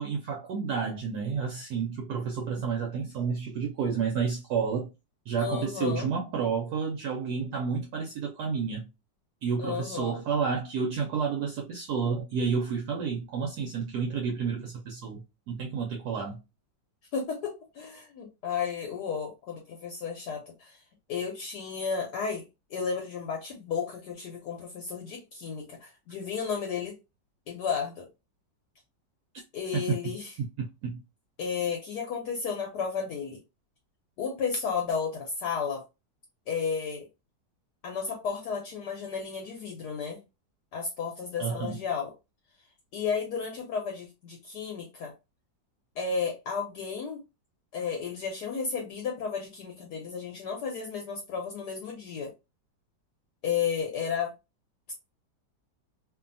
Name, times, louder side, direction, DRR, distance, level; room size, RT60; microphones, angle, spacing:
voice 1, 0.0-4.9 5.3-8.9 9.4-16.4 29.9-30.0 30.4-31.0 41.4-41.8, right 6 dB, 70° right, 1.0 m, -30 dB
voice 2, 5.4-6.1 9.6-10.2 17.1-20.8 21.1-22.4 22.7-27.0 27.5-28.1 29.5-30.3 31.4-33.4 34.2-35.8 36.5-37.1 37.8-40.2 40.7-42.1 42.9-45.1 46.0-47.2 47.7-52.3 53.4-54.4 54.9-55.0, left 6 dB, 70° left, 1.1 m, -33 dB
2.7 x 2.6 x 2.5 m
omnidirectional pair, 2.0 m